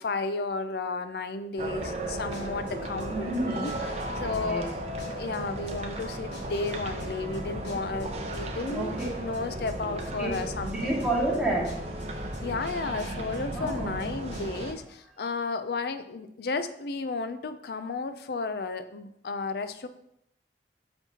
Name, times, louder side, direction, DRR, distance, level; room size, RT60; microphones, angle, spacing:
voice 1, 0.0-3.7 4.2-4.7 5.2-10.9 12.4-19.9, left 3 dB, 60° left, 11 dB, 0.4 m, -33 dB
sound 1, 1.6-14.7, right 1 dB, 35° right, 0.7 m, -35 dB
sound 2, 2.3-2.7 3.0-3.4 3.6-3.7 4.0-4.7 5.0-5.4 5.6-6.0 6.3-8.0 8.3-8.7 9.0-10.0 10.3-10.7 11.0-11.4 11.6-11.7 12.0-12.7 13.0-13.4 13.6-14.0 14.3-14.4, left 1 dB, 90° left, 2.2 m, -44 dB
voice 2, 3.1-3.7 4.4-4.7 8.7-8.9 10.2-10.3 10.7-12.2 13.5-13.9, right 1 dB, 5° right, -7 dB, 1.8 m, -29 dB
7.2 x 5.3 x 2.8 m, 0.77 s
head